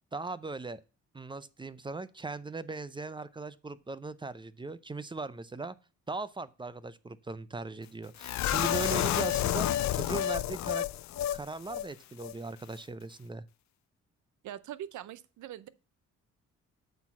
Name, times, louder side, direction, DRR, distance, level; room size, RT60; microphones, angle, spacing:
voice 1, 0.1-0.8 1.1-5.8 6.1-9.7 9.9-10.9 11.3-13.4, right 3 dB, 15° right, 0.5 m, -39 dB
sound 1, 8.2-11.4 11.7-11.8 12.2-12.3, left 12 dB, 65° left, 0.5 m, -30 dB
voice 2, 14.4-15.7, right 11 dB, 75° right, 0.7 m, -42 dB
8.0 x 4.5 x 5.9 m
cardioid pair, 90°, 30 cm